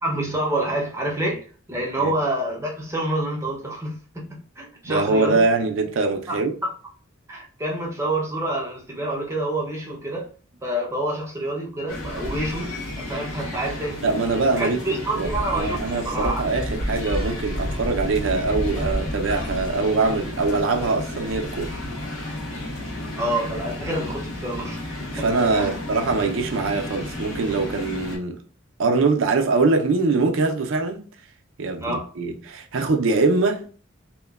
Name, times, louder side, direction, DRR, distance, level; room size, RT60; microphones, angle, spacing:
voice 1, 0.0-5.4 6.3-6.7 7.3-10.3 10.6-14.0 14.6-16.5 23.2-24.9 25.2-25.8 31.8-32.1, right 1 dB, 15° right, 0.5 m, -28 dB
voice 2, 4.8-6.5 14.0-14.8 15.1-21.8 25.1-28.4 28.8-31.0 31.6-33.7, right 3 dB, 70° right, 0.5 m, -23 dB
sound 1, 11.9-28.2, left 1 dB, 85° left, 0.9 m, -31 dB
2.9 x 2.1 x 2.2 m
head